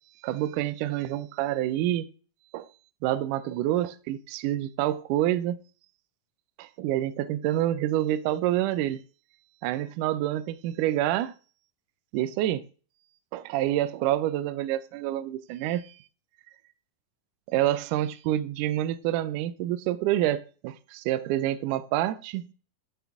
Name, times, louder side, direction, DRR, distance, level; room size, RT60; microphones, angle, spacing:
voice 1, 0.2-2.1 2.5-2.7 3.0-5.6 6.6-9.0 9.6-11.3 12.1-12.6 13.3-15.9 17.5-22.5, right 13 dB, 80° right, 1.9 m, -27 dB
12.0 x 4.3 x 3.5 m
omnidirectional pair, 4.0 m